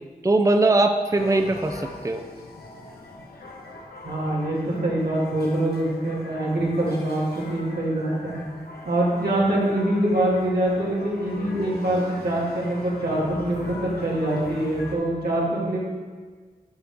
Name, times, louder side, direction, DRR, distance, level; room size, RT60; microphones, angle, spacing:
voice 1, 0.2-2.2, right 2 dB, 20° right, 6 dB, 0.5 m, -21 dB
sound 1, 1.1-14.9, left 2 dB, 85° left, 1.1 m, -41 dB
voice 2, 4.0-8.3 8.9-15.8, right 1 dB, 90° right, -6 dB, 2.2 m, -24 dB
12.5 x 4.9 x 3.5 m, 1.5 s
cardioid pair, 45°, 16 cm